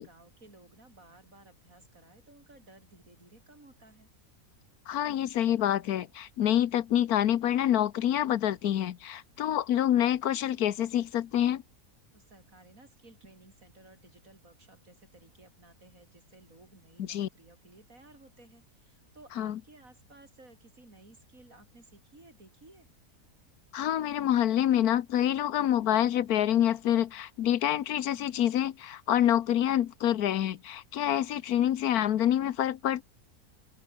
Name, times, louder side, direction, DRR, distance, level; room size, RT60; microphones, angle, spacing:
voice 1, 0.0-4.1 12.1-22.9, right 2 dB, 60° right, 6.1 m, -56 dB
voice 2, 4.9-11.6 17.0-17.3 19.4-19.6 23.7-33.0, left 11 dB, 75° left, 1.3 m, -27 dB
open air
omnidirectional pair, 1.6 m